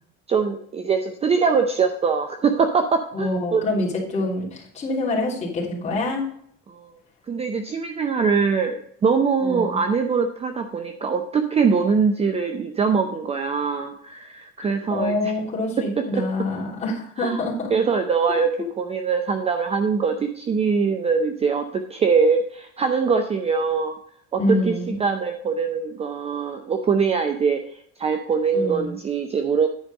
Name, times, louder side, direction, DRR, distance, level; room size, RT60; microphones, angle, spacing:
voice 1, 0.3-3.6 6.7-6.9 7.3-15.3 16.1-16.2 17.2-17.4 17.7-18.5 18.8-24.0 24.3-24.4 24.7-24.8 25.0-29.7, right 5 dB, 20° right, 6 dB, 0.6 m, -22 dB
voice 2, 3.1-6.2 9.4-9.8 14.9-17.7 24.4-25.0 28.5-29.0, left 2 dB, 20° left, -5 dB, 3.3 m, -26 dB
10.0 x 5.1 x 5.3 m, 0.67 s
cardioid pair, 160°, 30 cm